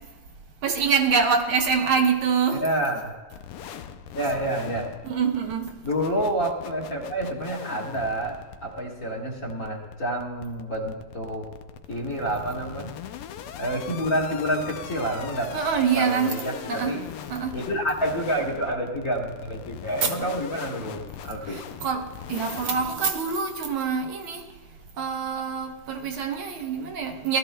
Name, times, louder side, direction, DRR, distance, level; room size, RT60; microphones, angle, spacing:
voice 1, 0.6-2.6 5.0-5.7 15.5-16.3 16.7-16.9 17.3-17.6 20.0-20.1 21.5-24.4 25.0-27.4, right 6 dB, 70° right, 3 dB, 1.8 m, -25 dB
voice 2, 2.5-3.1 4.1-4.9 5.8-11.5 11.9-13.0 13.6-15.6 15.9-17.0 17.5-21.6, right 1 dB, 40° left, -1 dB, 2.0 m, -28 dB
sound 1, 3.3-23.0, left 9 dB, 85° left, 1.6 m, -41 dB
17.5 x 13.0 x 2.2 m, 1.3 s
omnidirectional pair, 2.4 m